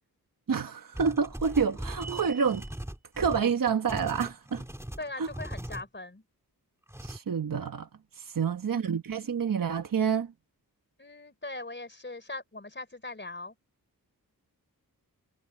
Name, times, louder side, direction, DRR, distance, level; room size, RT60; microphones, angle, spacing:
voice 1, 0.5-2.6 3.2-4.6 5.2-5.3 7.0-7.9 8.1-10.3, right 6 dB, 65° right, 1.2 m, -28 dB
sound 1, 0.9-5.8 6.9-7.2, right 1 dB, 5° right, 2.4 m, -39 dB
sound 2, 2.0-2.8, right 7 dB, 50° right, 0.8 m, -42 dB
voice 2, 5.0-6.2 11.0-13.5, left 2 dB, 30° left, 4.4 m, -40 dB
wide cardioid pair, 115°, 36 cm